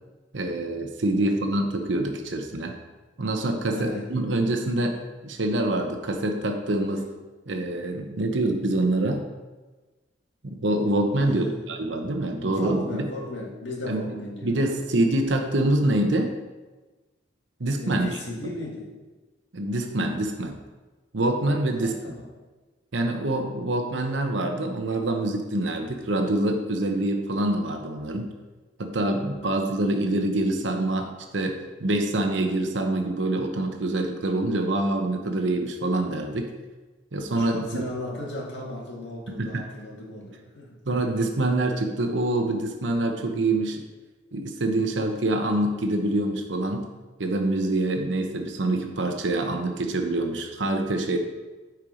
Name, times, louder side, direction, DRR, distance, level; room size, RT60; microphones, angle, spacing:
voice 1, 0.3-2.8 3.2-5.0 5.2-7.1 7.5-9.2 10.4-12.8 13.9-14.0 14.4-16.3 17.6-18.1 19.5-20.6 21.1-22.1 22.9-28.3 28.8-36.5 37.1-37.9 39.3-39.6 40.9-43.8 44.3-46.9 47.2-51.2, right 1 dB, 70° right, 4 dB, 0.9 m, -25 dB
voice 2, 3.7-4.1 11.2-11.7 12.4-14.7 17.8-18.9 21.7-22.3 37.3-40.8, left 1 dB, 65° left, -3 dB, 2.0 m, -35 dB
8.6 x 4.6 x 5.0 m, 1.2 s
head